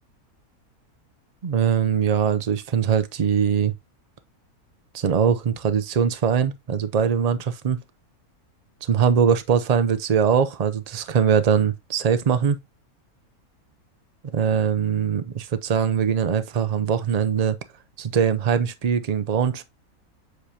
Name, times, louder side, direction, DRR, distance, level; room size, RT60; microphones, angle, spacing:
voice 1, 1.4-3.7 4.9-7.8 8.8-12.6 14.3-17.6 18.0-19.6, right 7 dB, 65° right, 0.4 m, -22 dB
8.1 x 4.9 x 2.8 m
omnidirectional pair, 1.6 m